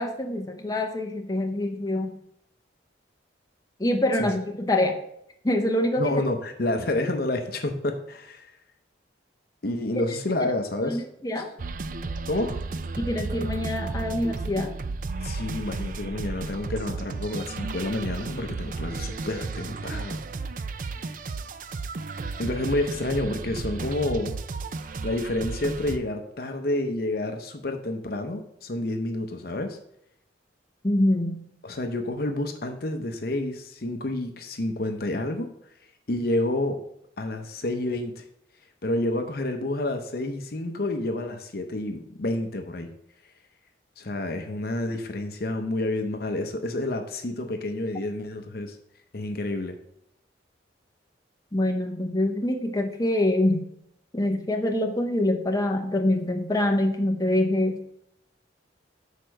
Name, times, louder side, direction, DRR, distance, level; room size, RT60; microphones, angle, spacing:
voice 1, 0.0-2.1 3.8-5.0 5.4-6.1 10.4-10.5 10.8-11.5 13.0-14.7 30.8-31.5 51.5-53.7 54.1-57.8, left 1 dB, 20° left, 2 dB, 0.8 m, -25 dB
voice 2, 6.0-8.5 9.6-11.0 11.4-11.5 12.3-12.6 15.2-20.2 20.6-21.2 22.4-24.3 25.0-29.8 31.6-35.5 36.1-36.8 37.2-38.2 38.8-42.9 44.0-48.8 49.1-49.8, left 1 dB, 50° left, 5 dB, 0.7 m, -29 dB
sound 1, 11.6-26.0, right 3 dB, 45° right, 0.4 m, -33 dB
6.6 x 4.5 x 6.3 m, 0.76 s
head